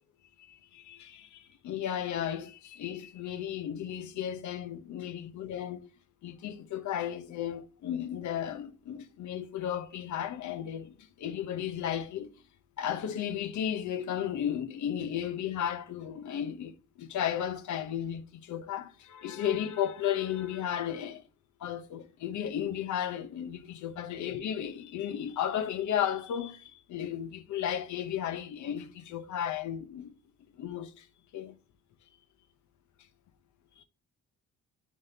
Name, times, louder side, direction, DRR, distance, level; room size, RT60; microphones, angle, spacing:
voice 1, 0.5-5.9 6.2-12.3 12.8-21.2 21.6-30.1 30.6-31.1 31.3-31.5 33.8-33.9, left 9 dB, 75° left, 0.9 m, -34 dB
9.5 x 3.7 x 2.8 m
cardioid pair, 90°, 30 cm